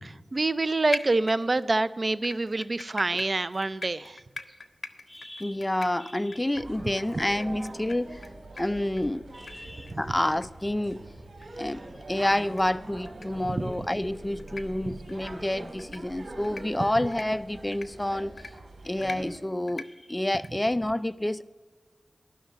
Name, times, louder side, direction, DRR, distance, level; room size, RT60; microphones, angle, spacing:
voice 1, 0.0-4.2 9.9-10.0 13.4-13.6, right 2 dB, 50° right, 0.4 m, -27 dB
sound 1, 0.9-1.7 2.2-8.3 8.6-8.7 9.0-9.1 9.5-9.6 9.9-10.0 10.4-10.5 10.8-10.9 11.4-11.5 12.5-12.6 13.1-13.3 13.7-14.0 14.4-14.6 15.1-15.3 15.8-16.0 16.4-16.6 17.1-17.2 17.7-17.9 18.4-18.5 19.0-19.2 19.7-19.9 20.3-20.5, left 4 dB, 80° left, 0.7 m, -39 dB
voice 2, 5.1-8.3 8.6-11.1 11.6-18.3 18.8-21.4, left 1 dB, 20° left, 0.4 m, -29 dB
sound 2, 6.5-19.4, right 2 dB, 70° right, 2.0 m, -43 dB
11.5 x 6.4 x 8.0 m
cardioid pair, 50°, 0 cm